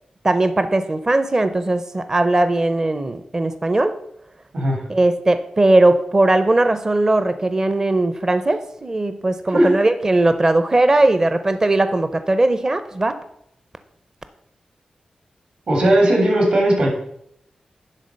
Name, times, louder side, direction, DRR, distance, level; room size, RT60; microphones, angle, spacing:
voice 1, 0.2-4.0 4.9-13.2, right 2 dB, 25° right, 11 dB, 0.6 m, -18 dB
voice 2, 15.7-16.9, right 1 dB, 70° right, -1 dB, 3.3 m, -17 dB
11.0 x 3.9 x 6.4 m, 0.73 s
wide cardioid pair, 115°, 2 cm